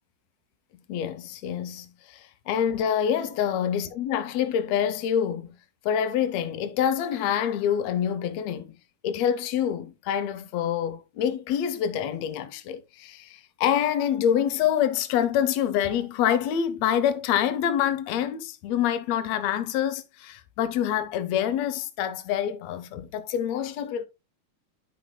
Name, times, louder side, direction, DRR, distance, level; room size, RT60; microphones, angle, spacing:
voice 1, 0.9-5.5 5.8-8.8 9.0-24.1, left 9 dB, 75° left, 1.7 m, -26 dB
11.0 x 5.6 x 2.2 m
omnidirectional pair, 3.6 m